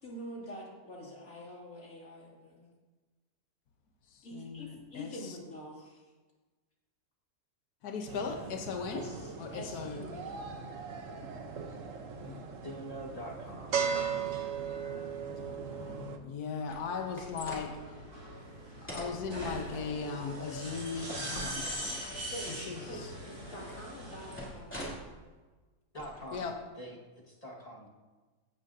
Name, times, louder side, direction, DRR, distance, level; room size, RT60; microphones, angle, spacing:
voice 1, 0.0-2.7 4.2-6.0 8.9-10.6 22.3-22.6 22.9-25.3, equal, 60° left, -4 dB, 3.0 m, -46 dB
voice 2, 4.1-5.4 7.8-9.1 9.4-10.0 12.2-12.5 15.3-18.0 18.8-23.1 26.3-26.5, left 5 dB, 80° left, 4 dB, 1.5 m, -39 dB
sound 1, 8.1-16.2, right 6 dB, 60° right, 1.2 m, -38 dB
voice 3, 12.6-13.8 25.9-26.4 26.8-27.9, equal, 25° left, -3 dB, 1.7 m, -44 dB
sound 2, 16.7-17.7 18.9-19.9 21.0-22.4 24.3-25.1 26.0-26.5, equal, 5° left, 2.8 m, -43 dB
sound 3, 16.8-24.5, right 1 dB, 75° right, 3.9 m, -42 dB
15.5 x 9.4 x 2.7 m, 1.3 s
omnidirectional pair, 1.6 m